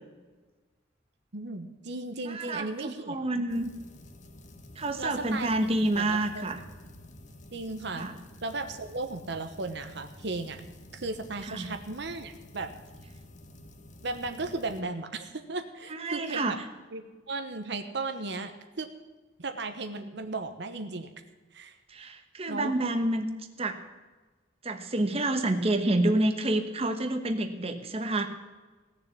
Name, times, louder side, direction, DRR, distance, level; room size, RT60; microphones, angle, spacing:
voice 1, 1.3-3.5 5.0-5.5 5.8-6.5 7.5-8.1 8.4-10.6 10.9-12.7 14.0-16.6 16.9-18.5 18.8-18.9 19.4-21.1 21.5-21.7 22.5-22.7, right 3 dB, 65° right, 7 dB, 1.1 m, -35 dB
voice 2, 2.2-3.7 4.7-6.6 8.0-8.2 11.5-11.7 15.9-16.5 21.9-23.3 23.6-23.8 24.6-28.3, right 1 dB, 35° right, 6 dB, 1.2 m, -28 dB
sound 1, 3.5-14.8, left 1 dB, 40° left, 1.3 m, -50 dB
17.5 x 7.0 x 8.3 m, 1.3 s
head